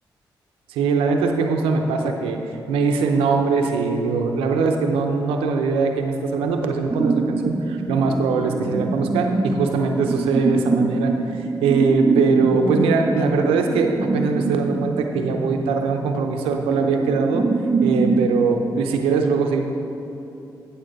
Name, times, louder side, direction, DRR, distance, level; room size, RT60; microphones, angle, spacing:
voice 1, 0.7-2.4 2.7-17.4 17.8-19.6, right 4 dB, 90° right, 4 dB, 0.7 m, -21 dB
sound 1, 6.9-18.3, right 3 dB, 25° right, 0.7 m, -24 dB
8.9 x 7.0 x 5.2 m, 2.9 s
supercardioid pair, 40°, 9 cm